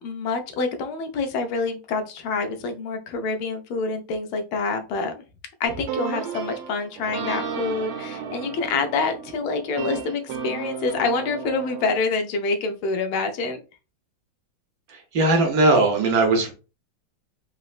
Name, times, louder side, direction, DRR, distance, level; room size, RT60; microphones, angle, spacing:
voice 1, 0.0-5.2 5.6-13.6, left 4 dB, 90° left, 6 dB, 1.5 m, -27 dB
sound 1, 5.6-12.0, right 7 dB, 85° right, 1.4 m, -33 dB
voice 2, 15.1-16.5, right 2 dB, 65° right, 3 dB, 1.0 m, -18 dB
4.1 x 2.0 x 2.3 m, 0.32 s
omnidirectional pair, 2.2 m